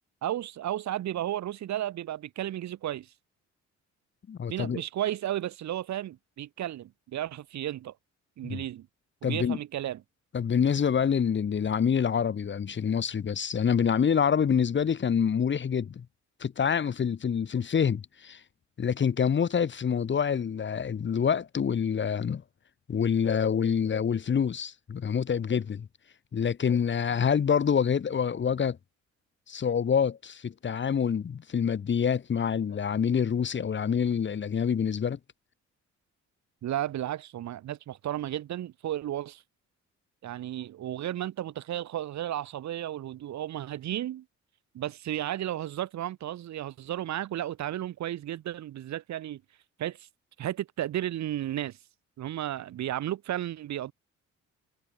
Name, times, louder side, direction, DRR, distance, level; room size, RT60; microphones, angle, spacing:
voice 1, 0.2-3.1 4.5-7.9 8.4-8.9 9.2-10.0 36.6-39.4 40.2-44.2 44.7-49.4 49.8-50.1 50.4-51.8 52.2-53.9, right 12 dB, 65° right, 1.2 m, -33 dB
voice 2, 4.3-4.8 8.4-8.6 9.2-9.6 10.3-16.0 16.4-18.4 18.8-22.4 22.9-25.9 26.3-28.8 29.5-35.2, left 7 dB, 40° left, 1.2 m, -26 dB
cardioid pair, 90°, 30 cm